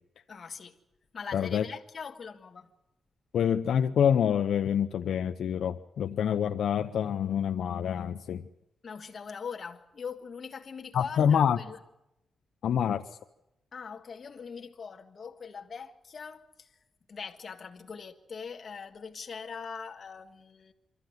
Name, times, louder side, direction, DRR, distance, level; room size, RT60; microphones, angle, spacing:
voice 1, 0.3-0.8 1.1-2.7 8.8-11.8 13.7-16.7 17.1-20.7, left 6 dB, 40° left, 1.7 m, -42 dB
voice 2, 1.3-1.6 3.3-8.4 10.9-11.6 12.6-13.0, left 8 dB, 75° left, 0.7 m, -26 dB
25.0 x 13.5 x 9.4 m
wide cardioid pair, 160°, 0 cm